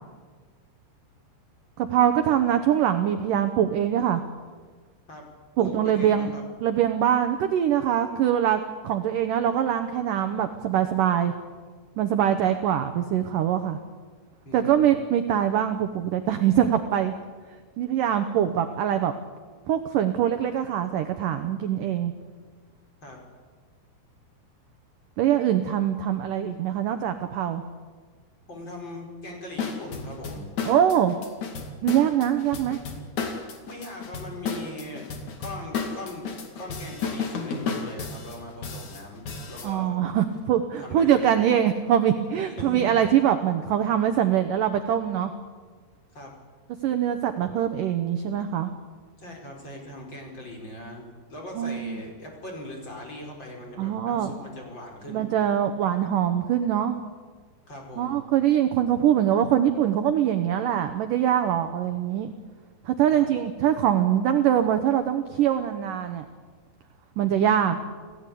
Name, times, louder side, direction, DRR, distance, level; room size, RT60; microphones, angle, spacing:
voice 1, 1.8-4.2 5.6-6.3 6.6-11.3 12.0-13.8 14.5-17.1 17.8-19.1 19.7-22.1 25.2-27.6 30.6-31.2 31.8-32.8 39.6-45.3 46.8-48.7 51.6-52.0 53.8-54.3 55.1-57.0 58.0-62.3 62.9-66.3 67.2-67.8, right 10 dB, 70° right, 8 dB, 2.1 m, -23 dB
voice 2, 5.6-6.4 12.4-12.5 14.4-15.0 23.0-23.2 28.5-30.5 33.6-35.1 35.4-36.3 36.6-40.0 40.8-41.3 42.6-42.9 46.1-46.3 49.2-55.3 57.7-58.2 63.1-63.3, left 1 dB, 25° left, 0 dB, 5.2 m, -40 dB
sound 1, 29.6-39.7, left 5 dB, 50° left, 3.5 m, -33 dB
28.0 x 17.5 x 8.5 m, 1.5 s
omnidirectional pair, 4.9 m